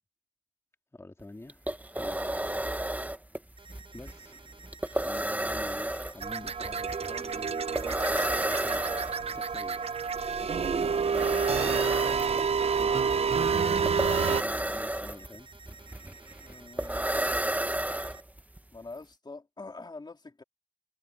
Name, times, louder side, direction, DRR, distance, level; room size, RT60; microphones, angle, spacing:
voice 1, 0.9-2.7 3.9-4.4 5.0-8.8 9.3-15.5, left 2 dB, 25° left, 2.4 m, -47 dB
sound 1, 1.2-1.3 1.5-18.6, right 1 dB, 15° right, 1.3 m, -33 dB
sound 2, 3.6-18.2, right 4 dB, 60° right, 6.5 m, -53 dB
sound 3, 6.2-14.4, right 6 dB, 80° right, 0.6 m, -28 dB
voice 2, 16.4-17.9 18.7-20.4, left 3 dB, 45° left, 3.0 m, -46 dB
wide cardioid pair, 70°, 10 cm